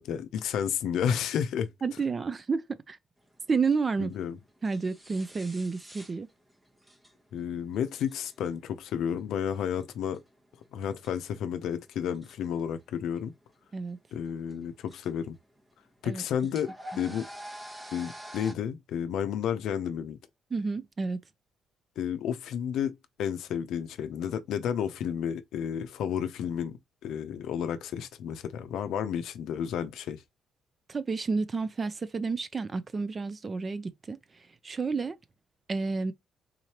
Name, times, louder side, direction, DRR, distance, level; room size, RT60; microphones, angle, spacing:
voice 1, 0.0-1.7 4.0-4.4 7.3-10.2 10.7-13.3 14.1-15.4 16.0-17.3 17.9-20.2 22.0-30.2, left 8 dB, 80° left, 0.5 m, -31 dB
voice 2, 1.8-3.0 3.5-4.1 4.6-6.3 13.7-14.0 16.0-16.2 20.5-21.2 30.9-34.2 34.6-35.2 35.7-36.1, right 4 dB, 35° right, 0.5 m, -30 dB
sound 1, 3.3-18.5, equal, 20° right, 0.9 m, -48 dB
3.8 x 3.1 x 2.8 m
cardioid pair, 90°, 0 cm